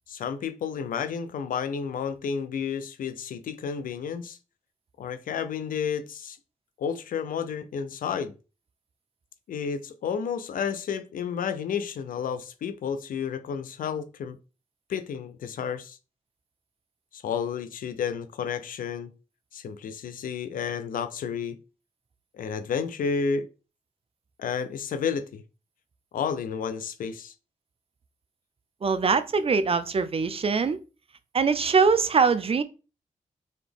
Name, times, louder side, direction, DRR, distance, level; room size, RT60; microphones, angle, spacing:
voice 1, 0.1-4.4 5.0-6.4 6.8-8.3 9.5-14.4 14.9-16.0 17.1-19.1 19.5-21.6 22.3-23.5 24.4-25.4 26.1-27.3, left 6 dB, 90° left, 0.4 m, -31 dB
voice 2, 28.8-30.8 31.3-32.6, right 5 dB, 45° right, 0.5 m, -22 dB
4.1 x 2.9 x 3.4 m
cardioid pair, 55°, 14 cm